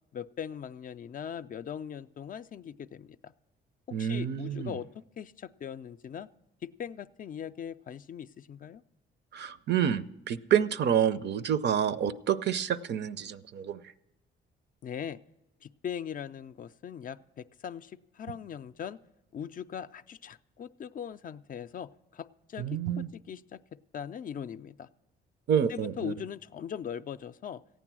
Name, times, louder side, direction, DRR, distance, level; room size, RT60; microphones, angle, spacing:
voice 1, 0.1-3.3 4.0-6.3 6.6-8.8 14.8-15.2 15.6-19.0 19.3-22.8 23.3-23.6 23.9-24.9 25.7-27.6, left 8 dB, 45° left, 13 dB, 0.4 m, -40 dB
voice 2, 3.9-4.8 9.3-13.8 22.6-23.1 25.5-26.1, right 9 dB, 60° right, 15 dB, 0.6 m, -28 dB
14.5 x 9.2 x 6.1 m, 0.95 s
cardioid pair, 90°, 20 cm